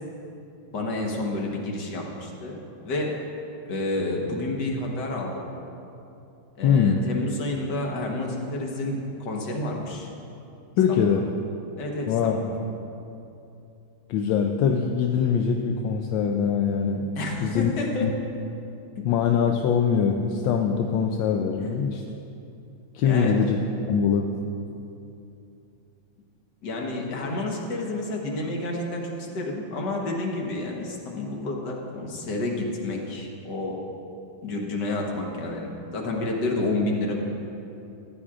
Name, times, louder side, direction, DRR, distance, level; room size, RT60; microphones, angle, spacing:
voice 1, 0.7-2.6 2.9-3.1 3.7-5.3 6.6-10.1 10.9-11.1 11.8-12.4 17.2-18.1 19.0-19.1 21.6-21.7 23.0-23.4 26.6-33.8 34.4-37.1, left 2 dB, 60° left, 0 dB, 1.7 m, -30 dB
voice 2, 6.6-7.0 10.8-11.2 12.1-12.4 14.1-17.0 17.4-17.7 18.0-18.1 19.0-22.0 22.9-23.6 23.9-24.3, left 7 dB, 75° left, 3 dB, 1.2 m, -22 dB
14.0 x 10.0 x 2.5 m, 2.7 s
omnidirectional pair, 2.3 m